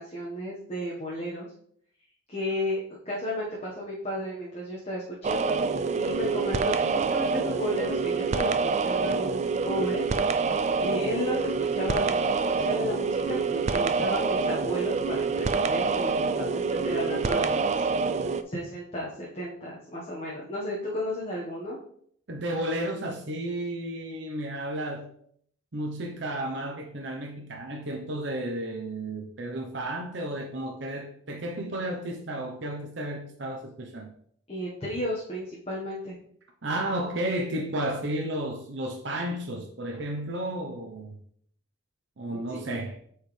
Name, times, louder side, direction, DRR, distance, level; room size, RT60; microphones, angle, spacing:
voice 1, 0.0-1.5 2.3-2.8 3.0-5.5 6.0-10.0 10.3-17.9 18.4-21.8 34.5-36.2 42.3-42.7, equal, 30° left, 1.3 m, -34 dB
sound 1, 5.2-18.4, right 4 dB, 35° right, 0.3 m, -26 dB
voice 2, 22.3-25.1 25.7-34.1 36.6-41.2 42.2-43.0, right 1 dB, 60° right, 0.8 m, -32 dB
8.1 x 4.7 x 3.3 m
head